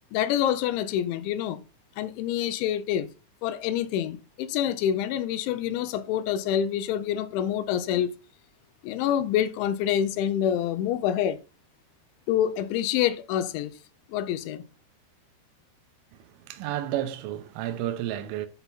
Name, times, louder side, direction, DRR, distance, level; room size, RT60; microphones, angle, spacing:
voice 1, 0.1-1.6 2.0-3.1 3.4-8.1 8.8-11.4 12.3-13.7 14.1-14.6, left 10 dB, 80° left, 2.9 m, -27 dB
voice 2, 16.5-18.5, right 12 dB, 85° right, 3.5 m, -31 dB
10.5 x 5.8 x 4.2 m
omnidirectional pair, 5.6 m